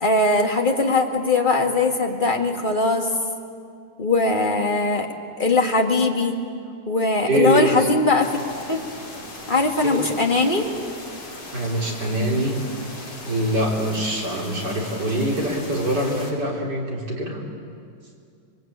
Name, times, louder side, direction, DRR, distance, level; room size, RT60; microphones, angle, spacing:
voice 1, 0.0-3.1 4.0-5.1 5.4-6.4 6.9-8.4 8.7-8.9 9.5-10.7, left 3 dB, 25° left, 2 dB, 2.0 m, -20 dB
voice 2, 7.2-7.9 9.8-10.0 11.5-12.6 13.1-17.4, right 1 dB, 50° right, -1 dB, 4.3 m, -24 dB
sound 1, 8.2-16.3, left 2 dB, 55° left, 4.7 m, -38 dB
26.5 x 23.0 x 8.8 m, 2.3 s
omnidirectional pair, 2.3 m